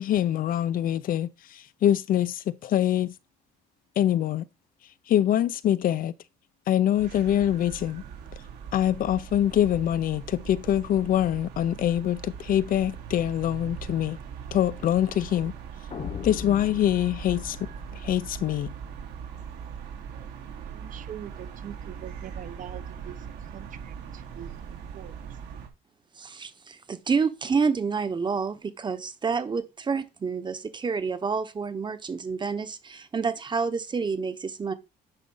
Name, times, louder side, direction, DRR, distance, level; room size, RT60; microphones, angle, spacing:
voice 1, 0.0-3.1 4.0-4.5 5.1-6.1 6.7-8.0 8.7-14.2 14.5-15.5 16.2-17.6 18.0-18.7, left 11 dB, 55° left, 0.6 m, -24 dB
sound 1, 6.9-25.7, right 7 dB, 80° right, 2.9 m, -40 dB
sound 2, 15.9-19.0, left 7 dB, 40° left, 1.0 m, -39 dB
voice 2, 20.6-23.3 23.5-25.2, right 10 dB, 50° right, 1.0 m, -43 dB
voice 3, 26.2-34.7, right 5 dB, 25° right, 1.1 m, -28 dB
10.0 x 4.1 x 5.6 m
cardioid pair, 110°, 17 cm